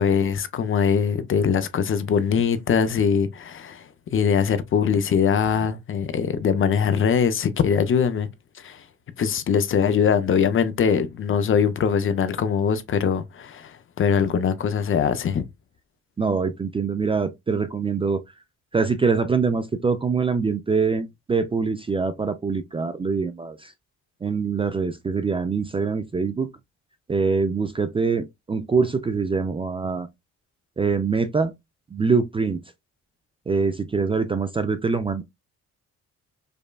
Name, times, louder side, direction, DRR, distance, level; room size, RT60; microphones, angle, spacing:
voice 1, 0.0-8.3 8.6-8.8 9.2-15.4, left 7 dB, 45° left, 0.5 m, -22 dB
voice 2, 16.2-18.2 18.7-23.7 24.2-26.5 27.1-30.1 30.8-31.5 31.9-32.6 33.5-35.2, right 5 dB, 20° right, 0.3 m, -24 dB
5.1 x 2.2 x 2.2 m
cardioid pair, 90°, 30 cm